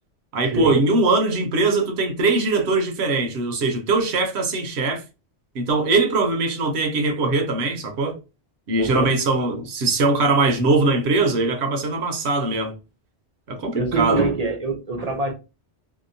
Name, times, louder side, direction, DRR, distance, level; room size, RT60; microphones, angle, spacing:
voice 1, 0.3-5.0 5.5-8.2 8.7-12.7 13.5-14.2, right 3 dB, 70° right, 0.9 m, -21 dB
voice 2, 8.8-9.1 13.7-15.3, right 3 dB, 50° right, 0.5 m, -24 dB
2.8 x 2.0 x 2.5 m
omnidirectional pair, 1.2 m